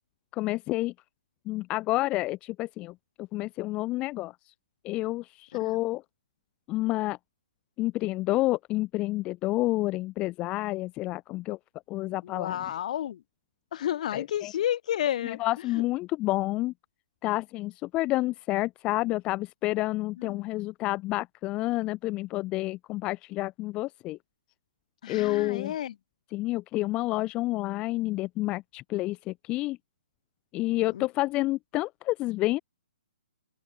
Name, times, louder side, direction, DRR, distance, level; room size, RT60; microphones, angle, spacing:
voice 1, 0.3-0.9 1.5-4.5 4.8-6.0 6.7-7.2 7.8-11.6 11.9-12.5 14.1-14.5 15.2-16.7 17.2-24.2 25.1-25.7 26.3-29.8 30.5-32.6, left 18 dB, 20° left, 1.2 m, -29 dB
voice 2, 12.2-13.2 13.7-15.8 20.2-20.4 25.0-26.0 30.9-31.1, left 11 dB, 45° left, 5.2 m, -31 dB
open air
hypercardioid pair, 160°, 6 cm